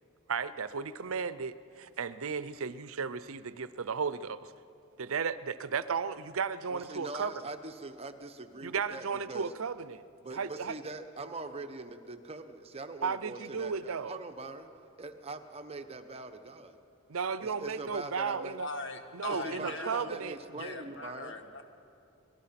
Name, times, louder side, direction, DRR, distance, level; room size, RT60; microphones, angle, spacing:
voice 1, 0.3-4.5 5.0-7.3 8.6-10.0 10.3-10.7 13.0-14.2 17.1-18.7 19.1-20.4, right 5 dB, 70° right, 15 dB, 0.6 m, -34 dB
voice 2, 6.7-9.5 10.2-14.7 15.0-16.8 17.4-18.6 19.3-21.4, right 3 dB, 30° right, 7 dB, 1.0 m, -42 dB
voice 3, 18.6-20.1 20.5-21.6, left 2 dB, 60° left, 6 dB, 1.7 m, -40 dB
25.0 x 19.0 x 5.8 m, 2.6 s
head